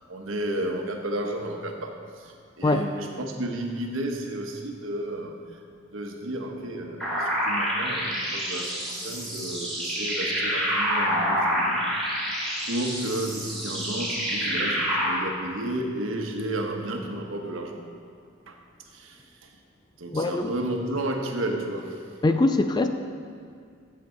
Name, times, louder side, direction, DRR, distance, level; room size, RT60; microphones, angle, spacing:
voice 1, 0.0-5.6 5.9-12.0 12.6-17.8 18.5-18.6 18.9-19.5 20.0-22.2, right 1 dB, 75° right, 3 dB, 1.1 m, -32 dB
sound 1, 7.0-15.1, equal, ahead, 2.6 m, -27 dB
voice 2, 20.1-20.5 22.2-22.9, left 2 dB, 20° left, 8 dB, 0.4 m, -22 dB
14.0 x 7.6 x 3.9 m, 2.2 s
head